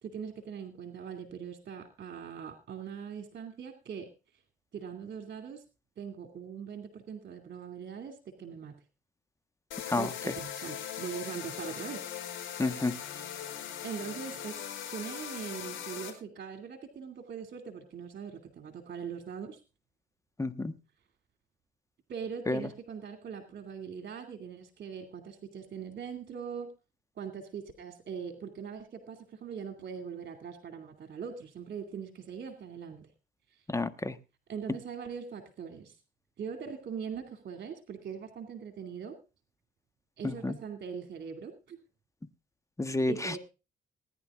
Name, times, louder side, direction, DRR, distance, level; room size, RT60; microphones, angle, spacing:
voice 1, 0.0-4.1 4.7-5.6 6.0-8.7 10.0-12.0 13.8-14.6 14.9-19.6 22.1-26.7 27.1-33.1 33.5-33.6 34.5-36.0 36.4-39.1 40.2-41.8 43.1-43.4, right 7 dB, 55° right, 7 dB, 2.5 m, -41 dB
sound 1, 9.7-16.1, left 9 dB, 80° left, 4.2 m, -40 dB
voice 2, 12.6-12.9 20.4-20.7 22.5-22.6 33.7-34.1 40.2-40.5 42.8-43.3, left 2 dB, 15° left, 12 dB, 1.4 m, -30 dB
19.5 x 10.5 x 3.6 m, 0.31 s
cardioid pair, 90°, 20 cm